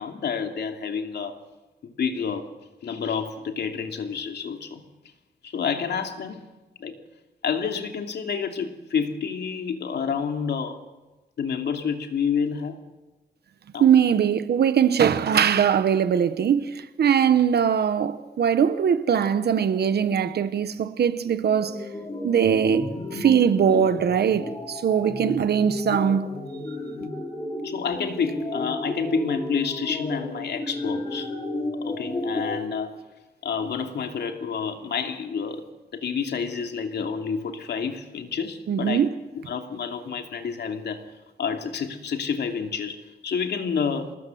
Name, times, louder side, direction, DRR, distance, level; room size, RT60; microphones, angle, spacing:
voice 1, 0.0-1.3 1.8-2.5 2.8-4.8 5.4-6.5 6.8-6.9 7.4-10.8 11.4-12.8 13.7-13.9 23.7-23.8 27.6-31.3 31.8-33.0 33.4-35.6 35.9-39.1 39.3-41.1 41.4-44.2, left 6 dB, 85° left, 2.7 m, -29 dB
voice 2, 13.8-21.9 22.2-26.3 38.7-39.1, right 8 dB, 75° right, 1.1 m, -21 dB
sound 1, 21.5-32.6, left 1 dB, 25° left, 5.6 m, -33 dB
27.5 x 19.5 x 7.9 m
wide cardioid pair, 170°, 17 cm